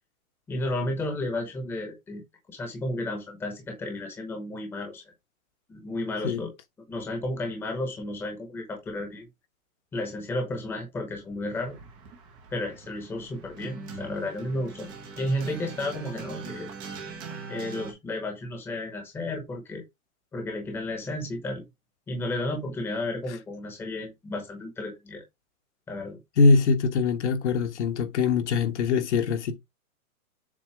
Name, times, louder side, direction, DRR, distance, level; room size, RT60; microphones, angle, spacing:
voice 1, 0.5-2.2 2.5-5.0 5.7-6.5 6.9-9.3 9.9-11.7 12.5-14.9 15.2-16.7 17.5-19.8 20.3-21.6 22.1-25.2 25.9-26.2, left 1 dB, 5° left, 1.0 m, -32 dB
sound 1, 11.5-17.9, right 5 dB, 10° right, 0.6 m, -41 dB
voice 2, 26.4-29.6, left 4 dB, 50° left, 1.2 m, -22 dB
7.4 x 2.8 x 4.6 m
hypercardioid pair, 160°, 44 cm